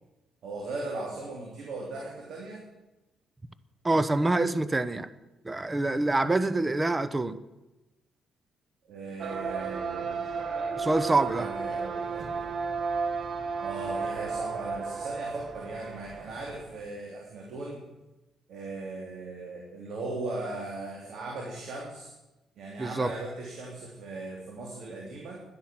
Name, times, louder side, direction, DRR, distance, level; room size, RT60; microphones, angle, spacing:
voice 1, 0.4-2.6 8.9-10.2 11.0-12.6 13.6-17.8 18.5-22.1 22.6-25.4, right 2 dB, 70° right, -1 dB, 3.1 m, -38 dB
voice 2, 3.8-5.1 5.4-7.4 10.8-11.5 22.8-23.1, right 2 dB, 20° right, 15 dB, 0.9 m, -26 dB
sound 1, 9.2-16.7, right 5 dB, 50° right, 1.3 m, -33 dB
11.5 x 10.5 x 7.5 m, 1.0 s
cardioid pair, 90°, 0 cm